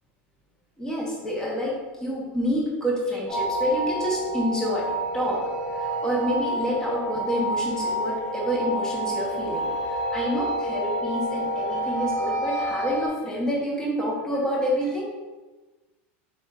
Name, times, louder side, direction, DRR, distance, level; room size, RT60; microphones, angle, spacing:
voice 1, 0.8-5.4 5.7-15.0, equal, 10° left, -5 dB, 0.9 m, -28 dB
sound 1, 3.3-13.1, right 1 dB, 25° left, 1.5 m, -28 dB
4.3 x 4.3 x 2.3 m, 1.2 s
supercardioid pair, 145°, 6 cm